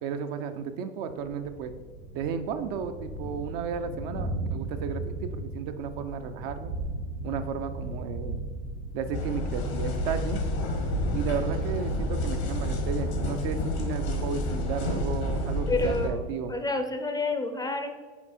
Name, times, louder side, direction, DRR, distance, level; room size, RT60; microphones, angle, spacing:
voice 1, 0.0-1.7 2.1-6.7 7.2-8.4 8.9-10.4 11.1-16.5, right 6 dB, 60° right, 8 dB, 0.6 m, -33 dB
Thunder, 1.4-13.9, right 1 dB, 85° right, 1.7 m, -37 dB
sound 1, 9.1-16.1, left 1 dB, 80° left, 1.4 m, -29 dB
voice 2, 15.7-16.2 16.5-18.1, left 3 dB, 10° left, 6 dB, 0.5 m, -29 dB
5.8 x 4.2 x 4.2 m, 1.4 s
hypercardioid pair, 85°, 33 cm